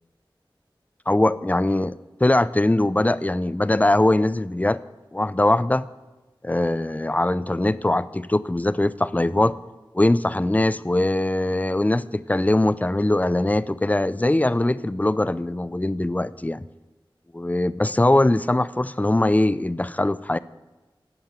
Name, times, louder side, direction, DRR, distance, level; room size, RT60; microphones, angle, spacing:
voice 1, 1.1-4.8 5.1-5.9 6.4-9.6 9.9-16.6 17.3-20.4, left 1 dB, 15° left, 15 dB, 0.4 m, -21 dB
13.5 x 5.8 x 9.1 m, 1.2 s
wide cardioid pair, 55°, 9 cm